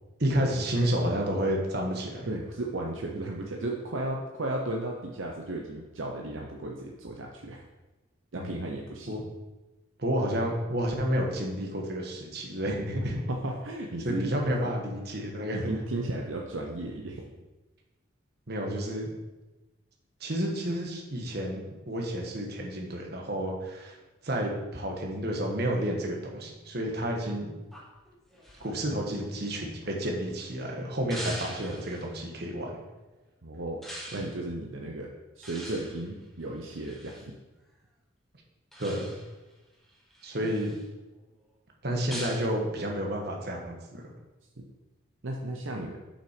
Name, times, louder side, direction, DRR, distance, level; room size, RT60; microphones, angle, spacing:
voice 1, 0.2-2.3 8.3-8.6 9.1-9.2 10.0-13.2 14.0-15.7 18.5-19.1 20.2-24.0 24.2-27.5 28.6-32.8 38.8-39.1 40.2-40.7 41.8-44.0, equal, 50° right, 1 dB, 1.4 m, -30 dB
voice 2, 2.3-7.6 8.3-9.1 13.3-14.3 15.7-17.3 33.4-33.8 34.1-37.2 40.4-40.5 44.6-44.7 45.2-46.0, right 2 dB, 70° right, 0 dB, 0.8 m, -34 dB
sound 1, 27.7-30.3 31.1-32.1 33.8-34.3 35.4-37.3 38.7-39.4 39.9-40.8 42.1-42.5, equal, ahead, 1.2 m, -43 dB
7.3 x 5.7 x 5.1 m, 1.1 s
head